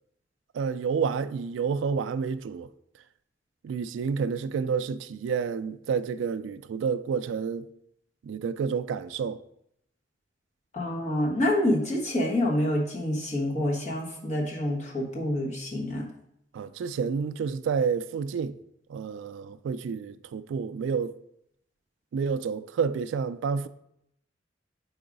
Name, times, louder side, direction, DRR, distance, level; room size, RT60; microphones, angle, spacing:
voice 1, 0.5-2.7 3.6-7.7 8.2-9.4 16.5-18.6 18.9-21.1 22.1-23.7, right 6 dB, 70° right, 0.3 m, -29 dB
voice 2, 10.7-16.1, left 1 dB, 40° left, 1.3 m, -27 dB
4.8 x 4.6 x 5.1 m
head